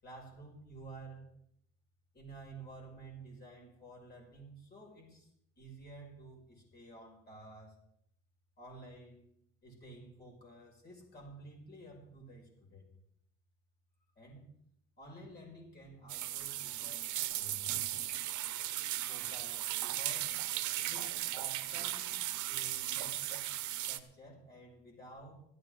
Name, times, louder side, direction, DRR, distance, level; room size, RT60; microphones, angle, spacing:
voice 1, 0.0-1.3 2.1-5.3 5.6-7.7 8.6-9.2 9.6-12.9 14.1-14.5 15.0-17.1 17.3-17.9 19.1-20.4 20.9-23.5 23.9-25.3, right 2 dB, 30° left, -1 dB, 6.1 m, -52 dB
sound 1, 16.1-24.0, right 14 dB, 65° right, 0.9 m, -37 dB
16.5 x 13.5 x 3.8 m, 0.71 s
cardioid pair, 150°, 31 cm